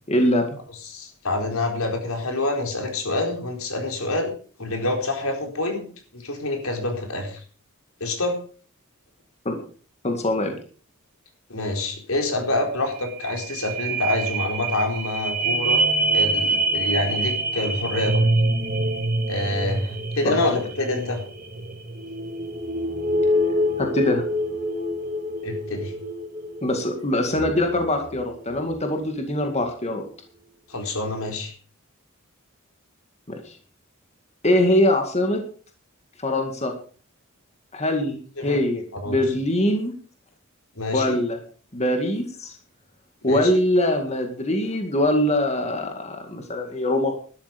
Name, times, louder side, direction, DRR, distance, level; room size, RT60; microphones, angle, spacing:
voice 1, 0.1-0.5 9.5-9.6 10.0-10.6 20.2-20.4 23.8-24.2 26.6-30.0 33.3-33.6 34.4-35.4 36.2-36.7 37.7-39.9 40.9-41.4 41.7-42.5 43.2-47.1, left 1 dB, 30° left, 4 dB, 2.1 m, -23 dB
voice 2, 0.8-4.3 4.6-5.9 6.1-7.4 8.0-8.4 11.5-15.8 16.1-18.3 19.3-21.2 25.4-25.9 30.7-31.5 38.4-38.6 38.9-39.2 40.8-41.2 43.2-43.5, left 2 dB, 85° left, 3 dB, 4.4 m, -26 dB
sound 1, 12.6-12.7 13.0-28.9 29.4-29.5, right 1 dB, 45° right, 3.4 m, -26 dB
12.5 x 12.5 x 5.2 m, 0.41 s
head